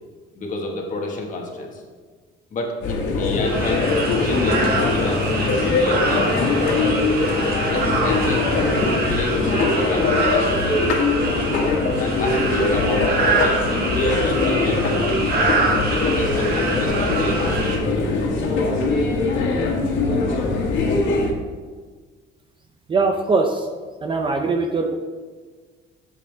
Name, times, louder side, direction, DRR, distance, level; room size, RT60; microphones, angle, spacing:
voice 1, 0.3-1.8 2.5-6.3 7.7-8.5 9.1-10.7 12.0-15.1 15.9-17.8, left 2 dB, 40° left, 1 dB, 1.7 m, -29 dB
sound 1, 2.8-21.3, left 3 dB, 65° left, 2.0 m, -21 dB
sound 2, 3.4-17.8, right 3 dB, 45° right, 1.6 m, -26 dB
voice 2, 22.9-23.7 24.0-24.9, right 3 dB, 25° right, 4 dB, 0.6 m, -21 dB
12.0 x 7.7 x 3.5 m, 1.5 s
cardioid pair, 170°, 21 cm